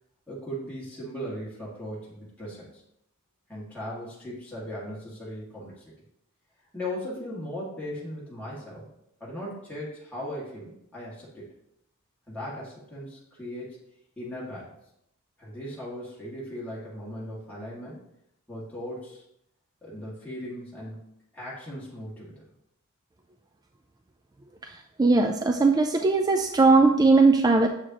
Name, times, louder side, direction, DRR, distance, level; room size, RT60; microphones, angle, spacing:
voice 1, 0.3-2.8 3.5-5.9 6.7-8.9 9.2-11.4 12.3-13.8 14.2-14.7 15.4-18.1 18.5-19.2 19.8-21.0 21.3-22.4, equal, 5° left, -8 dB, 2.0 m, -38 dB
voice 2, 25.0-27.7, right 3 dB, 20° right, 4 dB, 0.4 m, -19 dB
7.4 x 6.5 x 2.9 m, 0.77 s
head